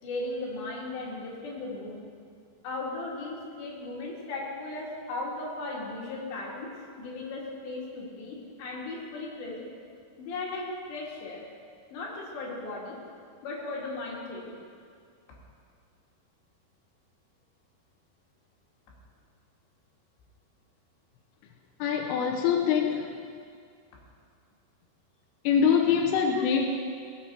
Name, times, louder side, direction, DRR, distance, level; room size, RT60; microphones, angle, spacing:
voice 1, 0.0-2.0 2.6-6.7 7.0-9.7 10.2-11.4 11.9-13.0 13.4-14.6 22.7-22.8 26.4-26.5, left 2 dB, 65° left, -4 dB, 4.4 m, -36 dB
voice 2, 21.8-23.1 25.4-26.7, left 7 dB, 90° left, 0 dB, 3.4 m, -24 dB
19.0 x 8.1 x 4.4 m, 2.2 s
omnidirectional pair, 5.6 m